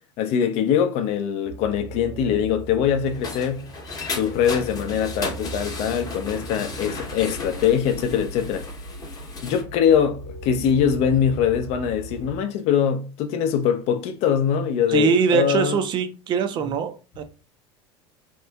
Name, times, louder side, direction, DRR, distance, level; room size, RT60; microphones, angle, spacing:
voice 1, 0.2-3.7 4.1-8.7 9.4-15.8, left 8 dB, 45° left, 0.5 m, -22 dB
sound 1, 1.4-12.4, right 2 dB, 75° right, 1.3 m, -38 dB
sound 2, 2.8-9.6, left 3 dB, 25° left, 0.8 m, -35 dB
voice 2, 14.9-17.2, right 6 dB, 30° right, 0.4 m, -22 dB
2.8 x 2.4 x 2.3 m
figure-of-eight pair, 75°, 15 cm